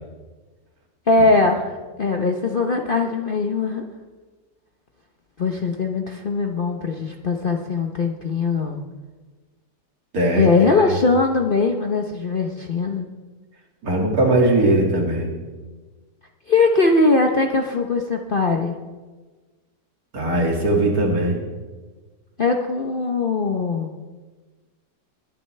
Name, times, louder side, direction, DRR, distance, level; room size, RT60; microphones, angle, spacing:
voice 1, 1.1-3.8 5.4-8.8 10.4-13.0 16.5-18.8 22.4-23.9, left 3 dB, 45° left, 3 dB, 0.7 m, -20 dB
voice 2, 10.1-11.0 13.8-15.3 20.1-21.4, right 1 dB, 60° right, 1 dB, 2.5 m, -20 dB
20.0 x 11.0 x 3.3 m, 1.3 s
omnidirectional pair, 1.8 m